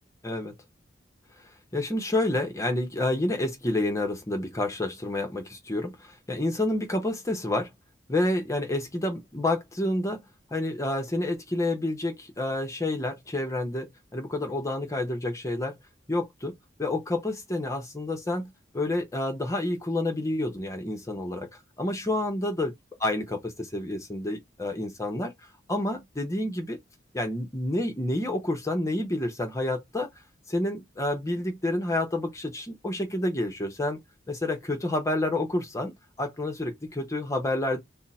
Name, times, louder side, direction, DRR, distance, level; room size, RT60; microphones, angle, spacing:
voice 1, 0.2-0.5 1.4-7.7 8.1-10.2 10.5-15.8 16.1-16.5 16.8-22.7 23.0-26.8 27.1-30.1 30.5-34.0 34.3-37.8, left 1 dB, 15° left, 0.7 m, -29 dB
3.5 x 2.0 x 4.0 m
head